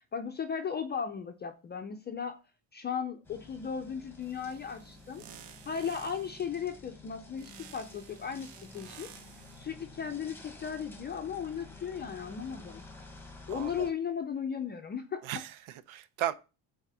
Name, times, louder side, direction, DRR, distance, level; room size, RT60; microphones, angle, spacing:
voice 1, 0.1-2.4 2.7-5.2 5.7-9.1 9.6-12.8 13.5-15.3, left 7 dB, 25° left, 0.4 m, -36 dB
sound 1, 3.2-13.9, left 2 dB, 5° left, 1.0 m, -51 dB
sound 2, 4.2-6.5 7.4-9.7, right 9 dB, 60° right, 1.0 m, -53 dB
voice 2, 13.5-13.9 15.2-16.3, right 12 dB, 90° right, 0.9 m, -35 dB
7.4 x 4.1 x 6.6 m
cardioid pair, 180°, 47 cm